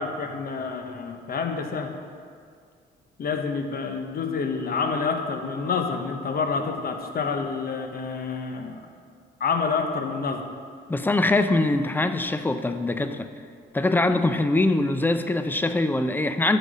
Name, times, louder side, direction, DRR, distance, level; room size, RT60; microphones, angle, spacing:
voice 1, 0.0-1.9 3.2-8.8 9.4-10.5, left 5 dB, 50° left, 5 dB, 0.9 m, -28 dB
voice 2, 10.9-13.3 13.7-16.6, left 2 dB, 10° left, 9 dB, 0.4 m, -23 dB
11.5 x 4.0 x 4.8 m, 2.1 s
cardioid pair, 90°, 20 cm